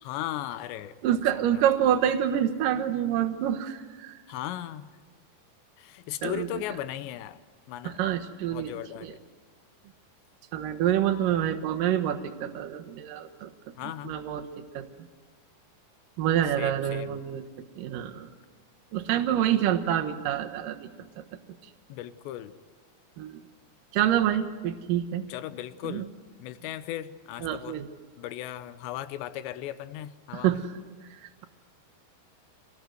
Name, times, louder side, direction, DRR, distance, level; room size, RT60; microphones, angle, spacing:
voice 1, 0.0-1.6 2.1-2.2 4.3-4.9 5.8-7.4 7.7-8.0 8.5-9.2 13.8-14.2 16.6-17.2 19.9-20.0 21.9-22.6 25.3-26.1 26.4-27.8 28.2-30.6, left 13 dB, 90° left, 13 dB, 3.1 m, -37 dB
voice 2, 1.0-4.2 6.2-6.5 7.8-8.7 9.0-9.1 10.5-13.5 14.0-14.5 14.7-14.8 16.2-17.4 17.8-18.3 18.9-20.9 21.2-21.3 23.2-23.3 23.9-25.3 25.8-26.0 27.4-27.8 30.3-30.6, right 10 dB, 65° right, 5 dB, 2.4 m, -27 dB
27.5 x 19.0 x 7.9 m, 1.4 s
omnidirectional pair, 4.9 m